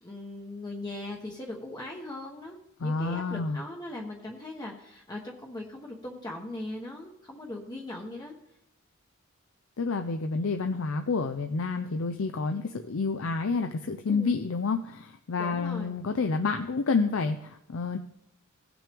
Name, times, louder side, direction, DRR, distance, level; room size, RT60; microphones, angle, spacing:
voice 1, 0.0-2.6 2.8-8.3 14.1-14.4 15.4-15.9, left 1 dB, 20° left, -1 dB, 1.0 m, -39 dB
voice 2, 2.8-3.6 9.8-18.0, left 4 dB, 65° left, 6 dB, 0.5 m, -29 dB
17.5 x 6.0 x 3.5 m, 0.79 s
head